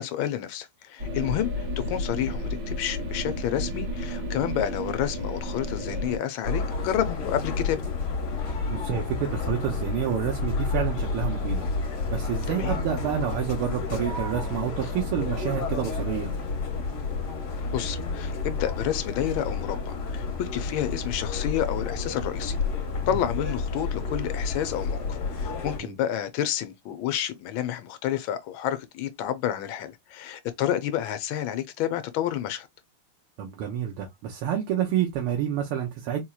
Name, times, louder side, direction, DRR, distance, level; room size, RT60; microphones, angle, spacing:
voice 1, 0.0-7.8 12.6-12.7 17.7-22.5 23.1-32.7, left 11 dB, 75° left, 1.3 m, -30 dB
sound 1, 1.0-6.2, left 1 dB, 60° right, 2.0 m, -32 dB
sound 2, 6.4-25.8, left 4 dB, 55° left, 1.6 m, -30 dB
voice 2, 8.7-11.6 12.1-16.3 23.1-23.2 25.8-25.9 33.4-36.2, right 9 dB, 80° right, 1.7 m, -29 dB
4.3 x 2.9 x 2.3 m
omnidirectional pair, 2.4 m